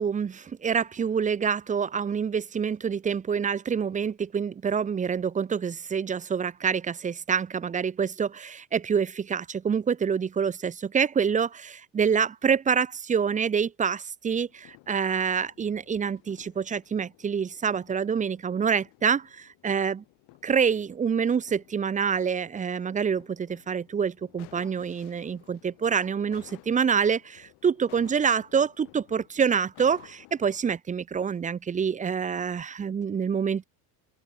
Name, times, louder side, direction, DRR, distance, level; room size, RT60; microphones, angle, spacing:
voice 1, 0.0-20.0 20.4-33.6, right 6 dB, 20° right, 0.9 m, -26 dB
sound 1, 14.3-30.8, left 25 dB, 70° left, 5.2 m, -56 dB
open air
cardioid pair, 160°, 41 cm